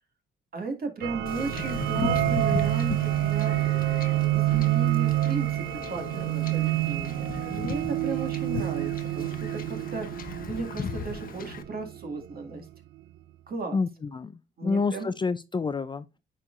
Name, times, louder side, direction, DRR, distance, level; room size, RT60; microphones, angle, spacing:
voice 1, 0.5-3.5 4.3-10.2 10.5-12.7 13.5-13.8 14.6-15.1, right 3 dB, 50° right, 2.1 m, -35 dB
sound 1, 1.0-12.3, right 16 dB, 70° right, 0.4 m, -27 dB
Wind / Ocean / Boat Water vehicle, 1.3-11.6, left 6 dB, 45° left, 0.8 m, -37 dB
voice 2, 13.7-14.3 14.6-16.0, left 4 dB, 25° left, 0.4 m, -28 dB
9.6 x 4.3 x 2.5 m
cardioid pair, 90°, 20 cm